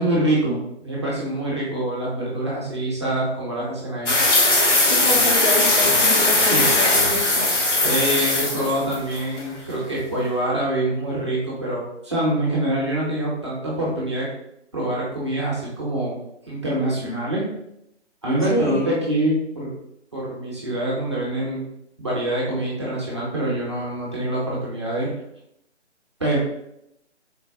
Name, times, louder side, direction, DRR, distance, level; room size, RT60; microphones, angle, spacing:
voice 1, 0.0-4.1 6.4-6.7 7.8-14.3 14.7-16.2 16.5-17.4 18.2-19.7 20.1-21.6 22.0-25.1 26.2-26.4, right 1 dB, 25° right, -6 dB, 0.6 m, -25 dB
sound 1, 4.1-9.4, left 2 dB, 90° left, 0.8 m, -19 dB
voice 2, 4.9-7.5 18.5-18.9, left 2 dB, 45° left, 0 dB, 0.5 m, -26 dB
3.8 x 2.1 x 2.5 m, 0.81 s
figure-of-eight pair, 150°, 35 cm